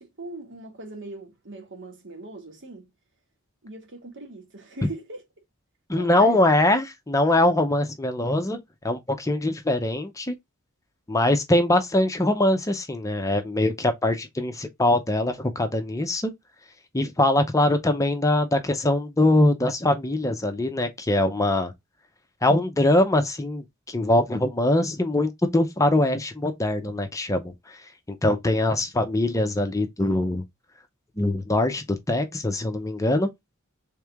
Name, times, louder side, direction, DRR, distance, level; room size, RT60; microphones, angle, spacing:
voice 1, 0.0-2.9 3.6-5.2 5.9-6.4, right 2 dB, 60° right, 1.4 m, -40 dB
voice 2, 5.9-10.4 11.1-16.3 16.9-21.7 22.4-27.8 28.1-30.4 31.2-33.3, left 1 dB, 15° left, 0.6 m, -23 dB
3.6 x 3.2 x 3.4 m
head